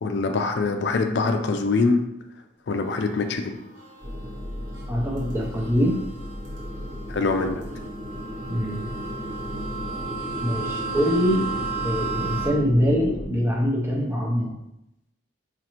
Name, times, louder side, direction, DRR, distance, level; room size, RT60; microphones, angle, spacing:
voice 1, 0.0-2.0 2.7-3.6 7.1-7.6, left 3 dB, 65° left, 5 dB, 0.4 m, -24 dB
sound 1, 2.8-12.5, right 4 dB, 80° right, 1.0 m, -36 dB
sound 2, 4.0-13.3, left 1 dB, 30° right, 0.8 m, -35 dB
voice 2, 4.9-6.0 8.5-8.9 10.4-11.5 11.8-14.6, equal, 10° right, -1 dB, 0.5 m, -23 dB
5.1 x 2.5 x 2.9 m, 0.82 s
head